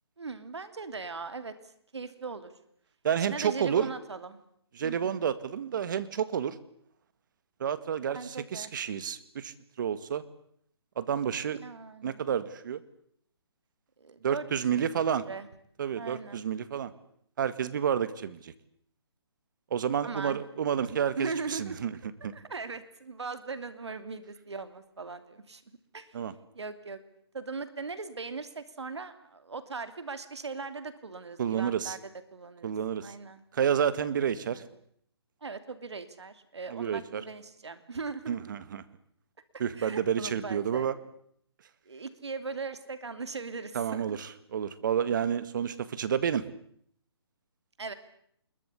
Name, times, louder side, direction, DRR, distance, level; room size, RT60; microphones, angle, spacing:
voice 1, 0.2-1.5 1.9-2.5 3.3-4.4 4.8-5.3 8.1-8.8 11.5-12.3 14.0-14.4 14.7-15.5 16.0-16.5 20.0-20.4 20.8-21.9 22.3-25.6 25.9-26.2 26.5-27.0 27.3-32.0 32.3-32.7 33.0-33.4 34.5-34.6 35.4-38.4 39.8-40.9 41.9-44.2 47.8-47.9, right 4 dB, 75° right, 11 dB, 2.8 m, -39 dB
voice 2, 3.0-3.9 4.8-6.6 7.6-10.2 11.0-11.6 12.0-12.8 14.2-15.3 15.8-16.9 17.4-18.5 19.7-22.0 22.2-22.3 26.1-26.3 31.4-32.0 32.6-33.1 33.5-34.6 36.7-37.2 38.3-38.8 39.6-40.9 43.7-46.5, right 8 dB, 45° right, 14 dB, 1.9 m, -30 dB
25.0 x 22.0 x 8.4 m, 0.67 s
figure-of-eight pair, 150°, 14 cm